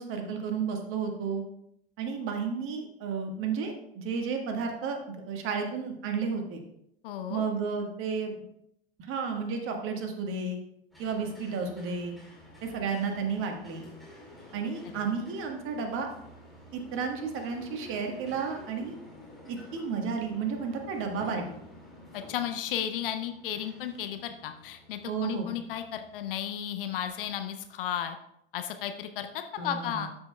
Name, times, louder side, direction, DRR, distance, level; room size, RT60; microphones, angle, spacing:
voice 1, 0.0-1.4 2.0-6.6 7.3-8.4 9.0-10.6 11.0-12.2 12.6-13.9 14.5-16.1 16.7-19.0 19.5-21.6 25.0-25.5 29.6-30.1, right 5 dB, 40° right, 3 dB, 1.5 m, -32 dB
voice 2, 7.0-7.4 14.9-15.1 22.1-28.2 28.5-30.1, left 10 dB, 55° left, 8 dB, 0.7 m, -34 dB
sound 1, 10.9-26.4, left 1 dB, ahead, 2.3 m, -50 dB
12.5 x 5.7 x 2.3 m, 0.75 s
figure-of-eight pair, 80°, 32 cm